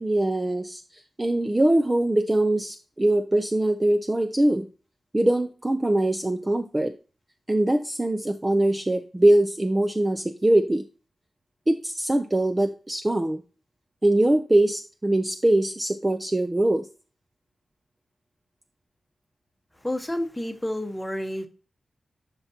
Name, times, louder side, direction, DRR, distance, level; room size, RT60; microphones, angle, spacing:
voice 1, 0.0-4.7 5.1-6.9 7.5-10.9 11.7-13.4 14.0-16.9, right 1 dB, 15° right, 0.5 m, -22 dB
voice 2, 19.8-21.5, left 1 dB, 5° left, 1.1 m, -30 dB
11.0 x 5.9 x 2.8 m
wide cardioid pair, 150°, 0 cm